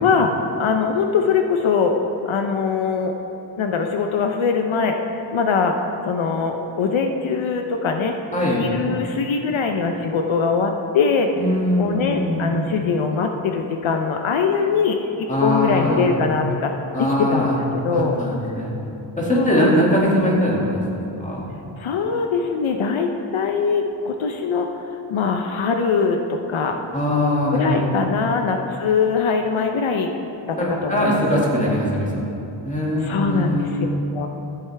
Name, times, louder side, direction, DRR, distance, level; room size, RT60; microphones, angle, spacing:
voice 1, 0.0-2.0 2.2-3.1 3.6-5.0 5.3-5.7 6.0-8.2 8.6-11.3 11.8-17.5 17.8-18.2 19.3-19.7 21.8-24.7 25.1-26.8 27.5-30.1 30.5-30.6 30.8-31.2 33.0-33.7 34.1-34.3, left 5 dB, 75° left, 4 dB, 0.7 m, -22 dB
voice 2, 8.3-8.7 11.4-12.6 15.3-16.1 16.9-17.6 17.9-18.7 19.2-20.8 21.2-21.5 26.9-27.8 30.6-32.2 32.6-33.9, equal, 15° left, -5 dB, 2.1 m, -21 dB
13.5 x 8.2 x 3.4 m, 2.8 s
wide cardioid pair, 135°, 48 cm